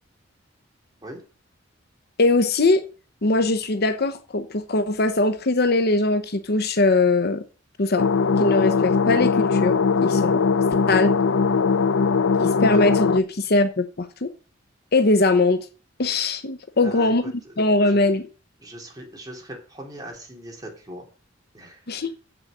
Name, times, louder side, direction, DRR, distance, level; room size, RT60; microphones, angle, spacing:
voice 1, 2.2-2.8 3.2-7.4 7.8-8.1 8.4-10.4 10.9-11.1 12.4-14.3 14.9-15.7 16.0-17.2 17.6-18.2 21.9-22.2, left 2 dB, 55° left, 0.9 m, -21 dB
sound 1, 8.0-13.2, left 5 dB, 80° left, 0.5 m, -20 dB
voice 2, 16.8-17.1 17.4-18.2 18.6-21.1 21.5-22.0, right 1 dB, 20° right, 3.5 m, -40 dB
8.0 x 6.3 x 7.7 m
head